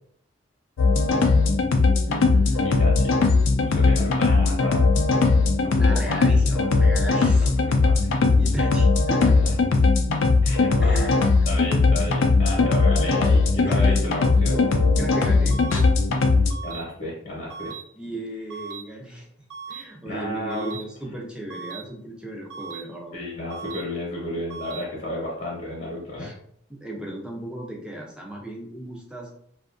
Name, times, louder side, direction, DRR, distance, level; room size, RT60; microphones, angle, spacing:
sound 1, 0.8-16.5, left 3 dB, 80° left, 0.4 m, -19 dB
voice 1, 2.1-2.7 5.7-7.5 8.4-9.4 10.8-11.2 13.5-14.1 15.0-15.6 17.9-19.3 19.7-23.2 26.2-26.4 26.7-29.3, right 1 dB, 5° right, -1 dB, 0.5 m, -36 dB
voice 2, 2.6-3.2 3.6-4.9 5.4-6.5 7.2-8.1 9.4-9.5 10.4-11.1 11.5-14.9 16.6-17.7 20.0-20.8 23.1-26.3, left 1 dB, 50° left, -5 dB, 0.8 m, -33 dB
sound 2, 15.5-15.8 16.5-16.8 17.5-17.8 18.5-18.8 19.5-19.8 20.5-20.8 21.5-21.8 22.5-22.8 23.5-23.8 24.5-24.8, right 6 dB, 75° right, 1.1 m, -37 dB
2.7 x 2.4 x 2.4 m, 0.66 s
head